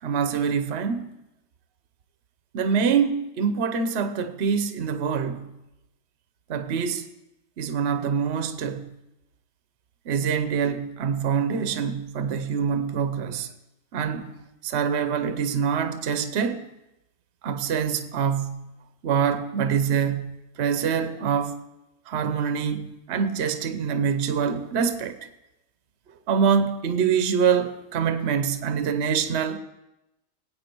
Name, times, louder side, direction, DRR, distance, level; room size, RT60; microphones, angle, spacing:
voice 1, 0.0-1.1 2.5-5.5 6.5-7.0 7.6-8.9 10.1-13.5 13.9-14.3 14.6-16.7 17.4-18.7 19.0-21.6 22.1-25.2 26.3-29.6, right 7 dB, 50° right, 0.9 m, -25 dB
19.0 x 8.4 x 4.5 m
omnidirectional pair, 1.9 m